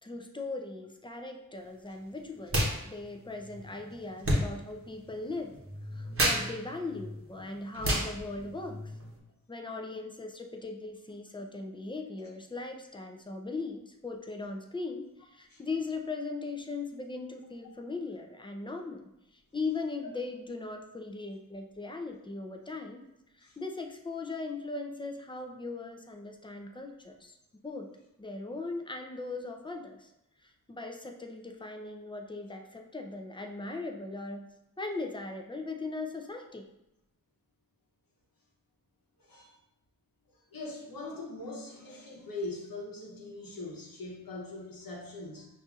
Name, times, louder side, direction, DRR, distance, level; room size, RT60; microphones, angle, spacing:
voice 1, 0.0-5.5 5.9-8.8 9.5-19.0 19.5-23.0 23.4-27.4 27.6-27.9 28.2-30.1 30.4-34.5 34.8-36.7, left 3 dB, 15° left, 3 dB, 0.5 m, -39 dB
sound 1, 2.5-2.8 3.0-9.2, right 1 dB, 40° right, 0.9 m, -32 dB
voice 2, 39.2-39.5 40.5-45.5, left 2 dB, 75° left, -2 dB, 1.0 m, -41 dB
5.4 x 2.6 x 2.4 m, 0.86 s
cardioid pair, 45°, 35 cm